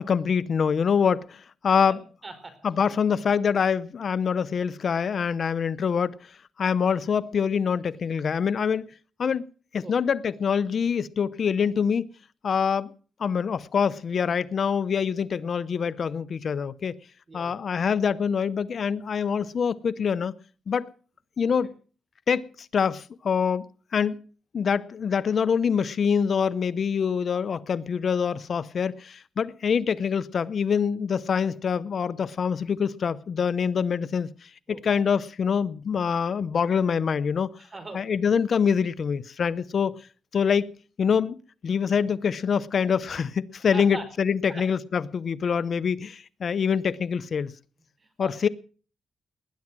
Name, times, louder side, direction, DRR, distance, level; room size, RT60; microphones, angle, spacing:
voice 1, 0.0-2.0 2.6-8.9 9.2-9.4 9.7-12.0 12.4-12.9 13.2-16.9 17.3-20.3 20.7-20.9 21.4-21.7 22.3-23.6 23.9-24.2 24.5-37.5 37.9-39.9 40.3-40.7 41.0-41.4 41.6-47.5 48.2-48.5, left 6 dB, 55° left, 0.7 m, -25 dB
voice 2, 1.9-2.5 9.8-9.9 17.3-17.6 34.7-34.8 37.5-38.2 43.7-44.0 44.5-44.6 45.4-45.5 48.0-48.5, right 3 dB, 30° right, 4.8 m, -41 dB
20.0 x 11.0 x 6.1 m
cardioid pair, 95°, 0 cm